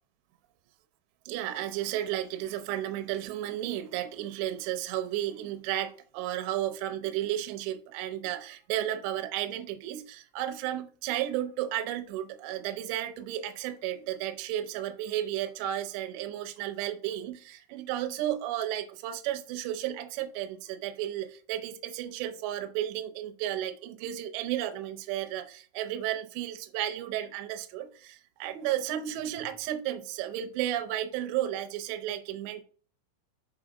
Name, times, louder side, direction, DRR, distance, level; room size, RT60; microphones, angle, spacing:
voice 1, 1.3-32.6, right 12 dB, 80° right, 2.8 m, -33 dB
6.2 x 4.7 x 5.0 m
omnidirectional pair, 5.4 m